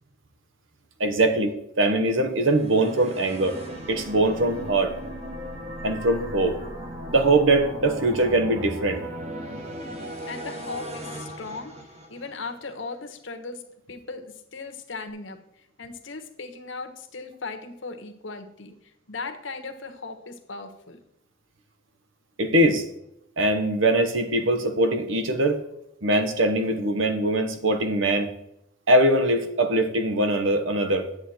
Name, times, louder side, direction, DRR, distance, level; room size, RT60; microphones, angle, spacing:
voice 1, 1.0-3.6 3.9-4.9 5.8-6.6 7.1-9.1 22.4-22.9 23.4-25.6 26.0-28.3 28.9-31.1, right 1 dB, 75° right, 7 dB, 1.1 m, -22 dB
sound 1, 2.3-12.5, equal, 35° right, 1.3 m, -37 dB
voice 2, 10.2-21.0, left 3 dB, 70° left, 6 dB, 1.2 m, -38 dB
10.0 x 8.1 x 4.3 m, 0.79 s
head